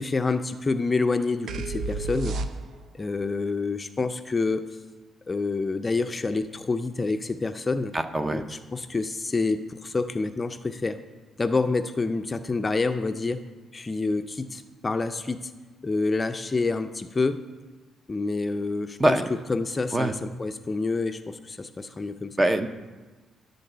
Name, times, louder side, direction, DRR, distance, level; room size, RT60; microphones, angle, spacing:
voice 1, 0.0-2.4 2.9-4.6 5.3-7.9 8.3-11.0 11.4-13.4 13.7-15.5 15.8-17.4 18.1-19.2 19.5-22.4, left 3 dB, 25° left, 8 dB, 0.4 m, -27 dB
sound 1, 1.5-3.0, right 3 dB, 65° right, 0.5 m, -31 dB
voice 2, 7.9-8.4 19.0-19.3 19.9-20.1 22.4-22.7, right 1 dB, 20° right, 9 dB, 0.6 m, -23 dB
11.5 x 4.0 x 6.7 m, 1.3 s
cardioid pair, 90°, 0 cm